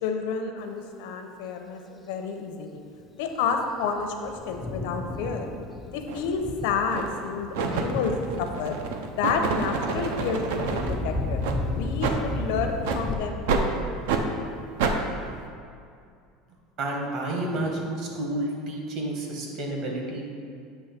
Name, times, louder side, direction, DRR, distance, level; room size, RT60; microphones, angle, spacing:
voice 1, 0.0-2.8 3.2-5.5 5.9-8.8 9.1-13.7, left 5 dB, 65° left, 5 dB, 0.7 m, -30 dB
Thunder, 3.4-13.2, left 2 dB, 10° left, 0.4 m, -34 dB
sound 1, 6.1-6.2 6.9-7.2 7.5-10.9 11.4-11.6 12.0-12.2 12.8-13.0 13.5-13.7 14.1-14.2 14.8-15.0, right 5 dB, 70° right, 0.6 m, -28 dB
voice 2, 16.8-20.3, right 1 dB, 40° right, 0 dB, 1.1 m, -30 dB
8.1 x 3.1 x 5.8 m, 2.3 s
cardioid pair, 175°, 0 cm